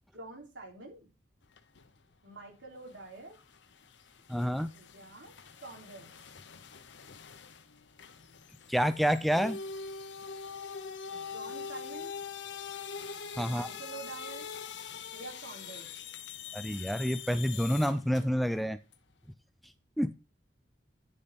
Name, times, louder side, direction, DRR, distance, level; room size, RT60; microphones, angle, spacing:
voice 1, 0.1-1.1 2.2-3.4 4.7-5.4 5.6-6.1 11.1-12.2 13.4-14.5 15.1-15.9, right 3 dB, 85° right, 0 dB, 3.6 m, -47 dB
sound 1, 1.4-2.0 2.3-18.5 18.9-19.0, left 6 dB, 80° left, 0.9 m, -44 dB
voice 2, 4.3-4.7 8.7-9.6 13.4-13.7 16.5-18.8 20.0-20.1, equal, ahead, 12 dB, 0.5 m, -28 dB
9.6 x 6.6 x 4.2 m, 0.29 s
head